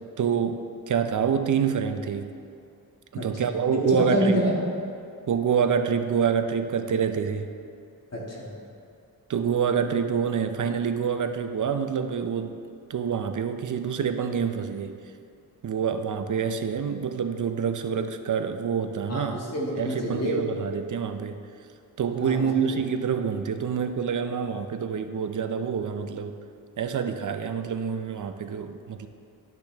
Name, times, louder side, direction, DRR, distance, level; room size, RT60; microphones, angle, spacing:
voice 1, 0.2-2.3 3.1-4.4 5.3-7.5 9.3-12.6 12.9-14.9 15.6-19.4 19.8-21.4 22.0-26.3 26.8-29.1, right 7 dB, 55° right, 8 dB, 0.6 m, -27 dB
voice 2, 3.2-3.5 4.0-4.6 8.1-8.6 19.1-20.5 22.2-22.8, equal, 40° left, -4 dB, 1.9 m, -28 dB
12.0 x 6.0 x 3.4 m, 2.5 s
cardioid pair, 90°, 38 cm